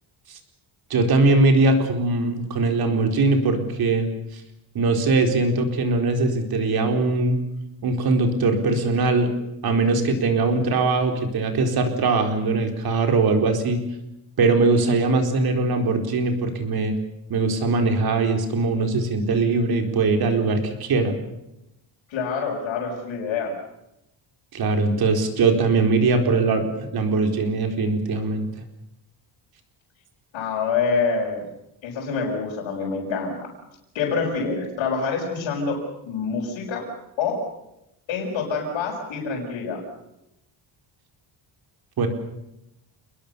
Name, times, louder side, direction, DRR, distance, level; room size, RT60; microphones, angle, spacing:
voice 1, 0.9-4.1 4.3-4.4 4.7-7.4 7.8-9.3 9.6-13.8 14.4-17.0 17.3-21.2 24.5-28.5 42.0-42.1, right 3 dB, 50° right, 5 dB, 4.3 m, -21 dB
voice 2, 22.1-23.5 30.3-31.4 31.8-33.5 33.9-36.8 37.2-37.4 38.1-39.8, left 5 dB, 80° left, -4 dB, 6.0 m, -26 dB
29.5 x 21.0 x 6.9 m, 0.87 s
cardioid pair, 175°, 46 cm